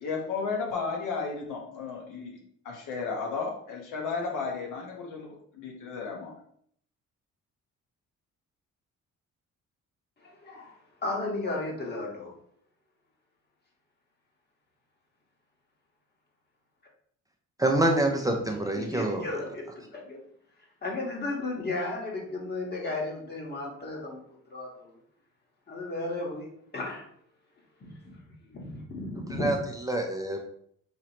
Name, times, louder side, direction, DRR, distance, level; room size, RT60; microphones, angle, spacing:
voice 1, 0.0-2.4 2.6-6.3, left 4 dB, 90° left, 0 dB, 1.1 m, -33 dB
voice 2, 10.2-10.7 11.0-12.3 18.8-20.2 20.8-25.0 25.7-27.1 27.8-29.7, left 2 dB, 35° left, -1 dB, 1.5 m, -35 dB
voice 3, 17.6-19.2 29.4-29.6 29.9-30.4, right 1 dB, 10° right, 1 dB, 0.6 m, -26 dB
4.9 x 3.1 x 3.0 m, 0.65 s
cardioid pair, 90°, 30 cm